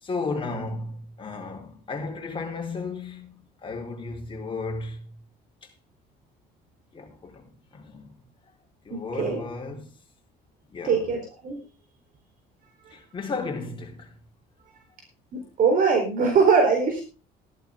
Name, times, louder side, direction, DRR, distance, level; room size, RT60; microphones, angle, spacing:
voice 1, 0.0-5.2 5.6-5.7 6.9-8.2 8.8-9.9 10.7-11.1 12.9-14.2, left 3 dB, 30° left, 4.5 m, -34 dB
voice 2, 8.9-9.4 10.8-11.6 15.3-17.0, right 5 dB, 55° right, 4.2 m, -22 dB
15.5 x 11.5 x 3.8 m
cardioid pair, 110°, 17 cm